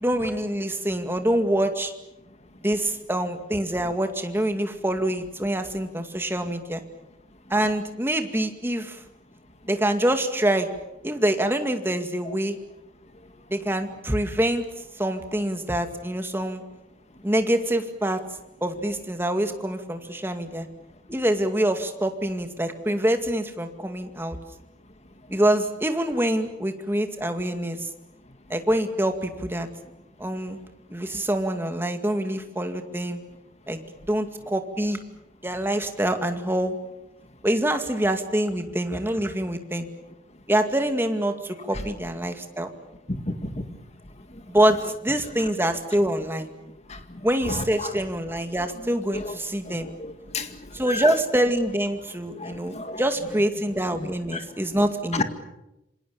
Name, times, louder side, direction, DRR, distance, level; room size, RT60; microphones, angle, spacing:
voice 1, 0.0-1.9 2.6-6.8 7.5-9.0 9.7-10.7 11.0-12.6 13.5-14.6 15.0-16.6 17.2-18.2 18.6-20.7 21.1-24.4 25.3-27.9 28.5-29.7 30.2-30.6 30.9-33.2 33.7-33.8 34.1-35.0 35.4-36.8 37.4-39.9 40.5-42.7 44.5-46.5 47.2-49.9 50.7-55.2, right 1 dB, 10° right, 6 dB, 2.2 m, -25 dB
voice 2, 43.1-43.7 47.5-47.9 49.1-49.3 50.0-50.5 50.9-51.1 52.4-53.0 54.0-54.1 54.3-54.4 55.1-55.2, left 2 dB, 35° left, 8 dB, 2.1 m, -30 dB
27.5 x 26.0 x 7.1 m, 0.92 s
head